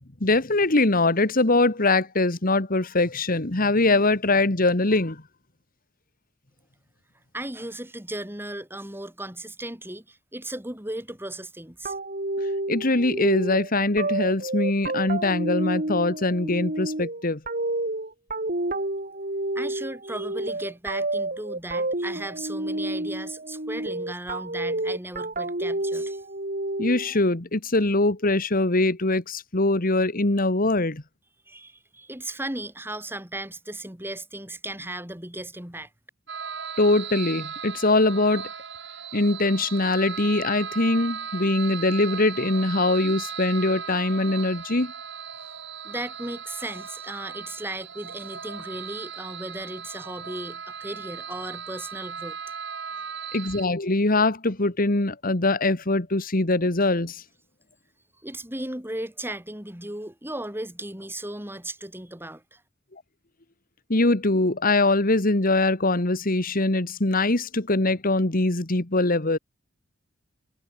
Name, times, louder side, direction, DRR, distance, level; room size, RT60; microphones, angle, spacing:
voice 1, 0.2-5.2 12.7-17.4 26.8-31.0 36.8-38.5 39.1-44.9 53.3-57.2 63.9-69.4, left 2 dB, 50° left, 2.0 m, -22 dB
voice 2, 7.3-11.9 19.5-26.2 31.5-35.9 45.8-52.4 58.2-62.6, right 1 dB, 10° right, 5.7 m, -36 dB
sound 1, 11.8-27.2, right 2 dB, 45° right, 6.5 m, -30 dB
sound 2, 36.3-53.7, right 7 dB, 65° right, 5.4 m, -37 dB
head